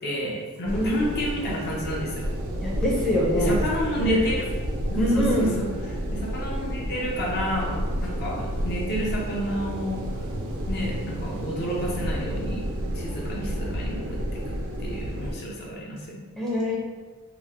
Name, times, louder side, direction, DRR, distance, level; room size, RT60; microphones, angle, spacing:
voice 1, 0.0-2.6 3.4-4.5 4.9-10.0 10.7-12.7 12.9-14.2 14.5-14.6 14.8-16.2, right 1 dB, 45° left, -2 dB, 0.6 m, -30 dB
voice 2, 0.6-1.1 2.6-3.6 4.0-4.2 5.0-5.5 16.4-16.8, left 1 dB, ahead, -7 dB, 0.5 m, -24 dB
sound 1, 0.7-15.3, equal, 65° right, 0.4 m, -30 dB
2.9 x 2.0 x 3.4 m, 1.4 s
head